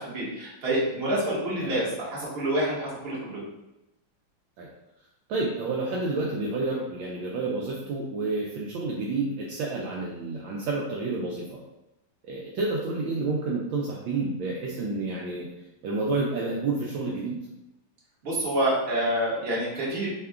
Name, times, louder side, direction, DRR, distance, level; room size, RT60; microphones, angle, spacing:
voice 1, 0.0-3.4 18.2-20.1, right 1 dB, 35° right, -7 dB, 1.1 m, -27 dB
voice 2, 5.3-11.6 12.2-15.5 15.8-17.4, right 3 dB, 75° right, -3 dB, 1.2 m, -29 dB
3.6 x 2.3 x 3.4 m, 0.93 s
omnidirectional pair, 2.3 m